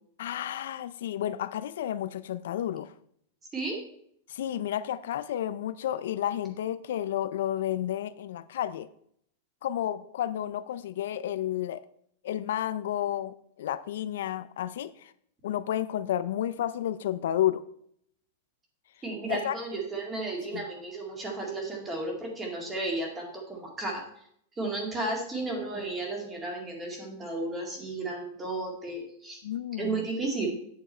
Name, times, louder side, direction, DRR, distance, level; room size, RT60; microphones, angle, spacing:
voice 1, 0.2-2.9 4.3-8.9 9.6-11.8 12.2-15.1 15.4-17.6 19.3-19.6 20.5-20.6 29.4-30.0, left 11 dB, 75° left, 0.4 m, -31 dB
voice 2, 19.0-24.0 24.6-29.4 29.8-30.5, right 2 dB, 15° right, 2.1 m, -33 dB
8.5 x 7.0 x 4.3 m
supercardioid pair, 160°, 0 cm